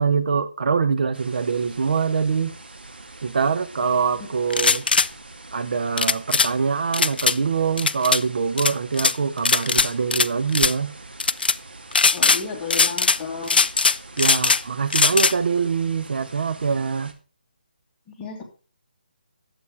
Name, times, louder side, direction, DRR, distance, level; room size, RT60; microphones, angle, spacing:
voice 1, 0.0-2.5 3.2-4.8 5.5-10.9 14.2-17.1, right 5 dB, 60° right, 0.9 m, -24 dB
sound 1, 1.1-17.1, right 2 dB, 90° right, 2.0 m, -44 dB
sound 2, 4.5-5.1 6.0-6.5 6.9-7.4 7.8-8.2 8.6-9.1 9.5-10.3 10.5-10.7 11.2-11.6 11.9-12.4 12.7-13.2 13.5-14.6 14.9-15.3, left 4 dB, 70° left, 0.4 m, -19 dB
voice 2, 12.1-13.6 18.2-18.4, left 5 dB, 15° left, 2.3 m, -33 dB
11.0 x 7.9 x 4.7 m
figure-of-eight pair, 155°, 5 cm